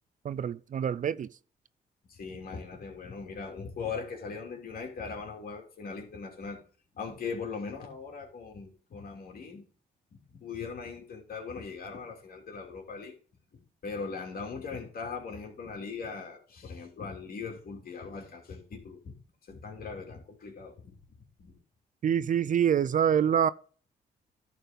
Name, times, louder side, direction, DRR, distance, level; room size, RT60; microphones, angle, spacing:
voice 1, 0.2-1.3 22.0-23.5, right 8 dB, 50° right, 0.5 m, -26 dB
voice 2, 2.1-6.6 6.9-9.6 10.1-13.1 13.5-19.1 19.5-21.0 21.4-21.6, left 5 dB, 60° left, 3.1 m, -40 dB
11.5 x 4.5 x 5.1 m
cardioid pair, 75°, 17 cm